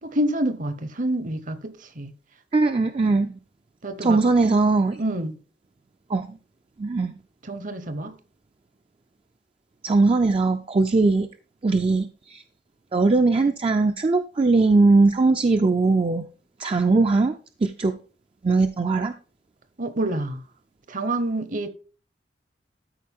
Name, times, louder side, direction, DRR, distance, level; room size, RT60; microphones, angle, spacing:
voice 1, 0.0-2.1 3.8-4.2 5.0-5.4 7.4-8.2 19.8-20.4 20.9-21.7, right 1 dB, 50° right, 0.9 m, -27 dB
voice 2, 2.5-3.4 4.0-5.0 6.1-6.4 6.8-7.1 9.8-11.3 11.6-12.4 12.9-16.3 16.6-17.9 18.4-19.1, right 3 dB, 30° right, 0.4 m, -20 dB
13.0 x 4.7 x 3.6 m
head